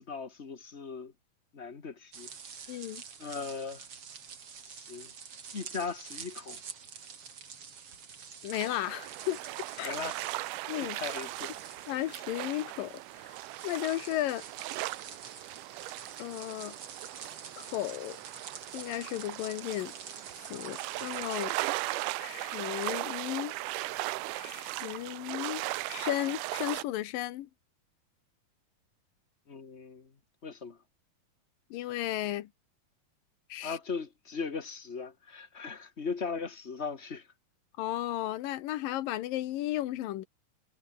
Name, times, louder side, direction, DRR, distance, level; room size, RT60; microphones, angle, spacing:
voice 1, 0.1-1.1 1.5-2.3 3.2-3.8 4.7-5.1 5.5-6.6 9.8-10.2 10.9-11.5 29.5-30.1 30.4-30.8 33.6-37.3, left 5 dB, 35° left, 1.1 m, -38 dB
sound 1, 2.1-21.5, right 6 dB, 45° right, 3.4 m, -48 dB
voice 2, 2.7-3.0 8.4-9.4 9.8-9.9 10.7-11.0 11.9-13.4 13.6-14.4 16.2-16.8 17.6-18.2 18.7-19.9 20.5-21.5 22.2-23.6 24.3-27.5 31.7-32.5 33.5-33.8 37.8-40.2, left 14 dB, 90° left, 2.9 m, -34 dB
sound 2, 8.5-26.8, right 19 dB, 80° right, 2.1 m, -38 dB
omnidirectional pair, 3.8 m